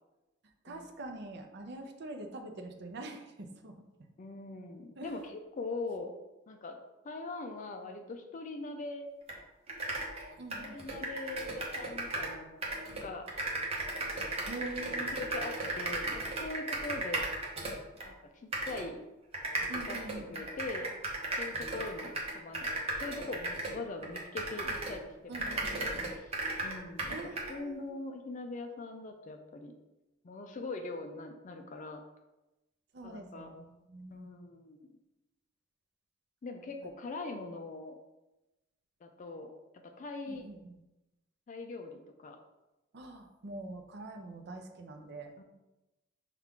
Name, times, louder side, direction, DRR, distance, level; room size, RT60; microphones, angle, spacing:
voice 1, 0.6-3.8 5.0-5.2 10.4-10.8 14.5-15.2 19.7-20.4 25.3-26.1 27.1-28.0 32.9-34.3 40.3-40.8 42.9-45.3, right 2 dB, 60° right, 5 dB, 0.6 m, -44 dB
voice 2, 4.2-6.1 6.5-6.8 7.0-9.1 10.6-13.3 15.1-17.3 18.0-19.0 19.6-20.0 20.3-20.9 21.4-22.7 22.9-25.4 25.7-26.3 26.6-29.7 30.2-32.0 33.0-33.5 34.1-34.9 36.4-38.0 39.0-39.5 40.0-40.5 41.5-42.4 45.4-45.5, left 3 dB, 40° left, 5 dB, 0.4 m, -42 dB
sound 1, 9.3-9.4 9.7-12.4 12.6-18.1 18.5-18.8 19.3-25.0 25.3-27.5, right 2 dB, 30° right, 0.8 m, -36 dB
5.6 x 2.4 x 3.6 m, 1.0 s
head